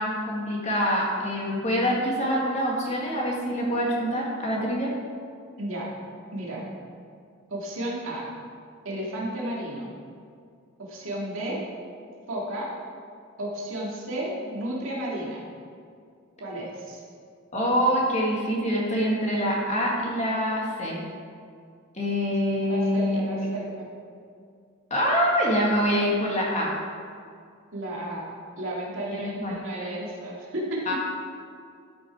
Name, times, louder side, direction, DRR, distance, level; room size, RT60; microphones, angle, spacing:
voice 1, 0.0-4.9 17.5-21.0 21.9-23.2 24.9-26.7 29.1-29.6 30.9-31.0, equal, 30° left, -3 dB, 1.6 m, -25 dB
voice 2, 5.6-5.9 6.3-6.6 7.5-8.3 8.8-9.9 10.9-11.6 12.3-12.7 13.4-15.4 16.4-17.0 22.7-23.9 27.7-28.3 28.6-30.9, right 1 dB, 65° right, -4 dB, 2.2 m, -32 dB
12.5 x 6.1 x 4.7 m, 2.3 s
head